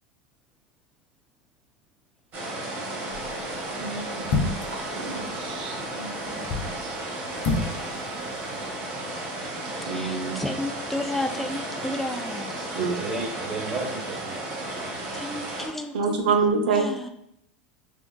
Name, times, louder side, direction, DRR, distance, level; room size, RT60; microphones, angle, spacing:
sound 1, 2.3-15.7, right 2 dB, 45° right, 0.9 m, -34 dB
sound 2, 3.1-3.4 4.2-4.8 6.3-6.8 7.4-7.8 8.0-8.1, left 3 dB, 60° left, 0.5 m, -27 dB
voice 1, 3.8-4.4 4.7-6.4 6.8-6.9 9.9-10.4 12.8-12.9 15.9-16.9, right 5 dB, 80° right, 3 dB, 0.6 m, -27 dB
voice 2, 9.8-12.9 15.1-17.1, left 1 dB, 5° left, 5 dB, 0.3 m, -33 dB
voice 3, 12.8-15.2, right 2 dB, 15° right, -2 dB, 1.1 m, -34 dB
3.4 x 2.4 x 2.2 m, 0.75 s
hypercardioid pair, 100°, 5 cm